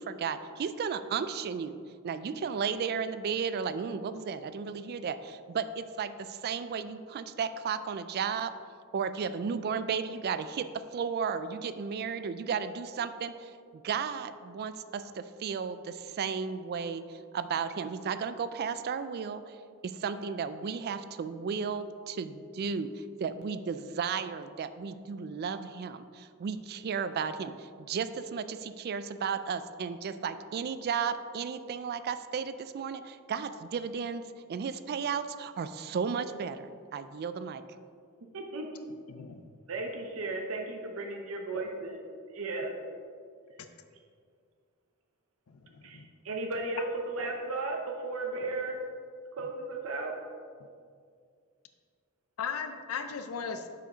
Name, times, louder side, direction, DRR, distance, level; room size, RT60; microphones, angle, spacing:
voice 1, 0.0-1.8 2.0-8.5 8.9-13.5 13.8-19.6 19.8-34.2 34.5-37.6, right 6 dB, 45° right, 12 dB, 0.3 m, -34 dB
voice 2, 38.3-38.7 39.7-42.0 42.3-42.7 45.8-48.8 49.4-50.1, right 2 dB, 70° right, 2 dB, 0.7 m, -35 dB
voice 3, 39.1-39.4 45.9-46.1 52.4-53.7, left 6 dB, 75° left, 7 dB, 0.5 m, -36 dB
6.9 x 5.1 x 5.0 m, 2.1 s
head